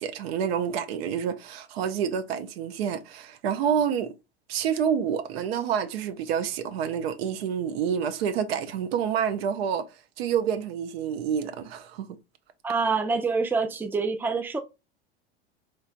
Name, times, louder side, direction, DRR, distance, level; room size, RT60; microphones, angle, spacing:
voice 1, 0.0-4.1 4.5-9.9 10.2-12.1, right 8 dB, 65° right, 0.7 m, -28 dB
voice 2, 12.6-14.6, right 4 dB, 5° right, 0.5 m, -26 dB
4.3 x 3.2 x 2.5 m
hypercardioid pair, 85°, 33 cm